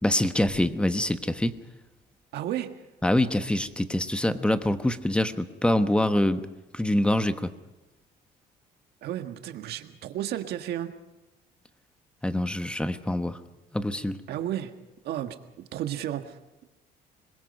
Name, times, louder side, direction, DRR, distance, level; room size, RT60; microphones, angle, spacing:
voice 1, 0.0-1.6 3.0-6.5 6.7-7.5 12.2-13.4 13.7-14.2, left 1 dB, 5° left, 9 dB, 1.2 m, -25 dB
voice 2, 2.3-2.8 9.0-10.9 14.3-14.7 15.0-16.6, right 11 dB, 75° right, 7 dB, 1.7 m, -33 dB
26.0 x 21.5 x 5.5 m, 1.1 s
cardioid pair, 110°, 17 cm